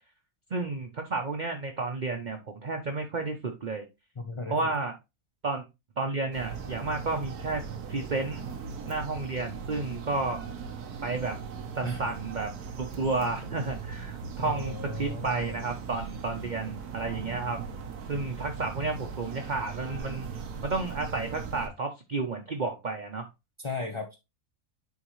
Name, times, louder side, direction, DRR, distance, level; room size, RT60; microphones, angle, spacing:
voice 1, 0.5-3.8 4.5-4.9 5.4-5.6 6.0-7.6 7.9-8.4 8.8-10.4 11.0-11.4 11.7-12.5 12.8-17.6 18.1-20.3 20.6-23.3, right 3 dB, 40° right, 0.7 m, -31 dB
voice 2, 4.2-4.6 11.8-12.0 14.4-15.6 23.6-24.2, left 3 dB, 30° left, 0.5 m, -35 dB
sound 1, 6.3-21.7, right 5 dB, 90° right, 1.5 m, -39 dB
9.5 x 3.6 x 3.1 m
omnidirectional pair, 1.6 m